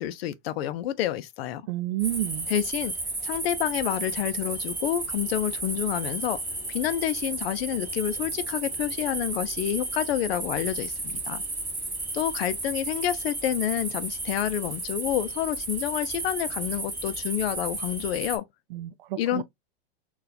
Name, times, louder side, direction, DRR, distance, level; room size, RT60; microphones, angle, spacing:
voice 1, 0.0-1.6 2.5-2.9 3.2-6.4 6.7-11.4 12.1-18.4 19.2-19.4, left 12 dB, 70° left, 0.5 m, -28 dB
voice 2, 1.7-2.5 18.7-19.4, right 14 dB, 55° right, 0.4 m, -30 dB
sound 1, 2.0-18.4, right 2 dB, 5° right, 0.8 m, -33 dB
3.8 x 2.4 x 2.7 m
supercardioid pair, 150°, 32 cm